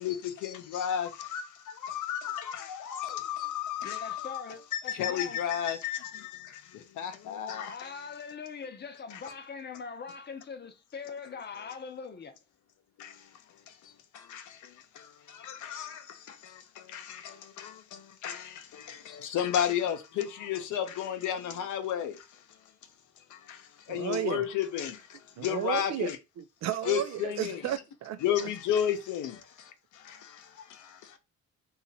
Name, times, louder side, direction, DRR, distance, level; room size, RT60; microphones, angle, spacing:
voice 1, 0.0-4.4 4.7-7.9 9.1-9.3 13.0-22.6 23.2-26.2 26.8-27.7 28.2-31.2, left 9 dB, 80° left, 0.7 m, -34 dB
voice 2, 3.8-5.4 7.7-12.3, left 5 dB, 35° left, 0.7 m, -42 dB
voice 3, 23.9-24.4 25.4-26.1 26.4-28.2, right 12 dB, 65° right, 0.4 m, -33 dB
2.8 x 2.4 x 4.0 m
cardioid pair, 90°, 30 cm